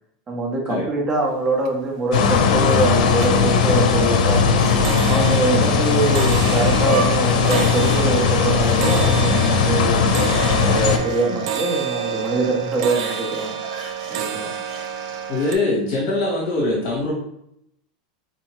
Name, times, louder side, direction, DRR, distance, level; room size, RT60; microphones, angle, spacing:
voice 1, 0.3-4.6 5.1-10.1 10.6-13.6 14.1-14.5, right 2 dB, 15° right, -1 dB, 0.7 m, -24 dB
sound 1, 1.2-1.3 1.6-2.2 2.6-2.9 3.2-15.6, right 8 dB, 55° right, 0.4 m, -29 dB
sound 2, 2.1-11.0, left 5 dB, 80° left, 0.5 m, -18 dB
sound 3, 4.3-5.4 5.8-8.0 8.6-9.5 9.8-11.8 12.8-14.8 15.3-15.5, right 3 dB, 75° right, 1.3 m, -33 dB
voice 2, 15.3-17.1, left 2 dB, 40° left, -4 dB, 1.2 m, -22 dB
4.0 x 2.7 x 3.0 m, 0.78 s
supercardioid pair, 170°, 4 cm